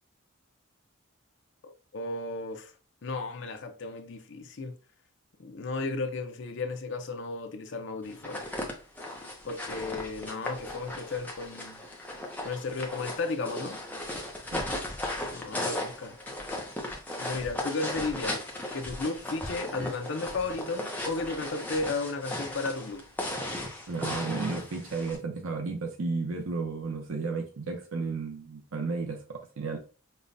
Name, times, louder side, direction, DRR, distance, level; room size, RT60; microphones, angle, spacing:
voice 1, 1.6-2.7 3.0-4.7 5.4-8.4 9.4-11.8 12.4-13.8 15.3-16.1 17.2-18.4 18.7-23.0, left 3 dB, 55° left, 0.5 m, -34 dB
sound 1, 8.1-25.2, left 1 dB, 10° left, 0.6 m, -36 dB
voice 2, 23.9-29.8, right 4 dB, 75° right, 0.7 m, -33 dB
5.3 x 2.2 x 2.6 m
head